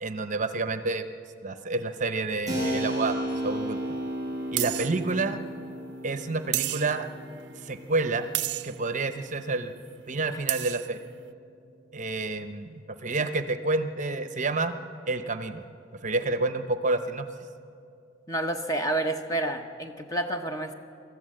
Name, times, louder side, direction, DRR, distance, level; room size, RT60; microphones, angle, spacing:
voice 1, 0.0-1.0 1.4-4.0 4.5-5.4 6.0-7.1 7.6-8.3 8.6-9.7 10.1-11.0 11.9-14.7 15.1-15.6 16.0-17.3, right 3 dB, 40° right, 9 dB, 0.8 m, -29 dB
Keyboard (musical), 2.5-10.8, equal, 20° right, 6.7 m, -35 dB
sound 1, 3.3-3.4 4.6-5.0 6.5-7.1 8.3-8.8 10.2-10.3 10.5-10.9, right 16 dB, 60° right, 0.4 m, -30 dB
voice 2, 18.3-20.7, right 1 dB, 20° left, 6 dB, 0.9 m, -29 dB
24.0 x 14.0 x 7.7 m, 2.5 s
head